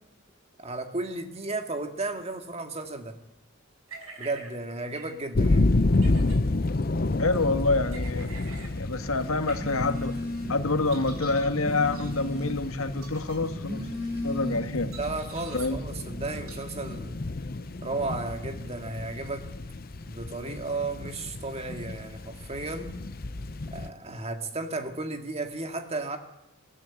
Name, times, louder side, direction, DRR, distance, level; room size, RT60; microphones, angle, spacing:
voice 1, 0.6-3.2 4.2-5.7 15.0-17.2 17.8-19.4 20.0-22.9 23.7-26.2, right 2 dB, 30° right, 6 dB, 2.0 m, -34 dB
sound 1, 3.9-4.5 4.9-5.1 5.9-6.4 7.9-8.7 9.5-9.6 10.9-11.5 11.9-12.1 12.9-13.4 14.9-15.7 16.5-16.6, right 4 dB, 80° right, 5.4 m, -45 dB
sound 2, 5.3-23.9, left 2 dB, 45° left, 0.7 m, -30 dB
voice 2, 7.2-8.3 8.8-10.2 10.5-13.9 14.2-14.9 15.5-15.8, left 3 dB, 75° left, 8 dB, 1.8 m, -27 dB
Telephone, 9.5-10.7 11.1-12.8 13.4-14.9, left 1 dB, 45° right, 7.7 m, -36 dB
21.0 x 14.0 x 8.9 m, 0.90 s
head